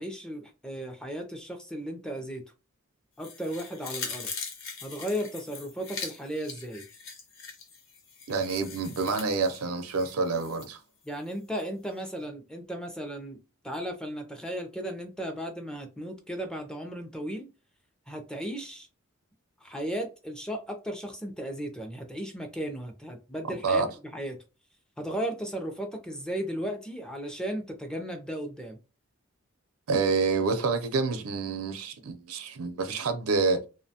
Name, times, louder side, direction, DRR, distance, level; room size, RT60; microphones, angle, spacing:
voice 1, 0.0-2.4 3.2-4.3 4.8-6.8 11.1-13.4 13.6-17.5 18.1-18.9 19.6-23.8 24.1-24.4 25.0-28.8, equal, 5° left, 0.4 m, -35 dB
sound 1, 3.2-10.7 11.0-11.1, left 5 dB, 65° left, 0.7 m, -41 dB
voice 2, 8.3-10.8 23.6-23.9 29.9-33.7, right 4 dB, 90° right, 0.5 m, -27 dB
2.7 x 2.2 x 2.7 m
head